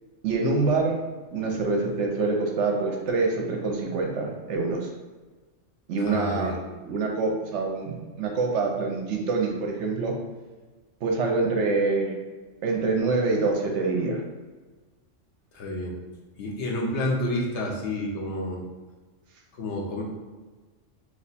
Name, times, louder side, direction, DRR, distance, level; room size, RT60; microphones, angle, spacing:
voice 1, 0.2-1.0 1.3-4.9 5.9-6.6 6.8-10.1 11.0-12.1 12.6-14.2, right 3 dB, 70° right, 1 dB, 0.8 m, -25 dB
voice 2, 6.1-6.6 15.5-16.0 16.4-18.6 19.6-20.0, left 1 dB, 65° left, -1 dB, 0.9 m, -29 dB
2.9 x 2.2 x 4.0 m, 1.3 s
omnidirectional pair, 1.3 m